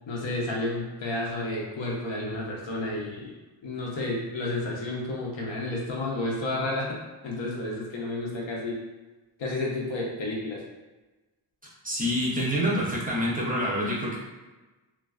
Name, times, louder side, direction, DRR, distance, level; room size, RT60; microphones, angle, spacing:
voice 1, 0.1-3.3 3.6-6.9 7.2-8.8 9.4-10.6, left 2 dB, 80° left, -3 dB, 0.7 m, -31 dB
voice 2, 11.8-14.2, equal, 20° right, -4 dB, 0.5 m, -27 dB
2.4 x 2.2 x 2.3 m, 1.2 s
wide cardioid pair, 100°, 45 cm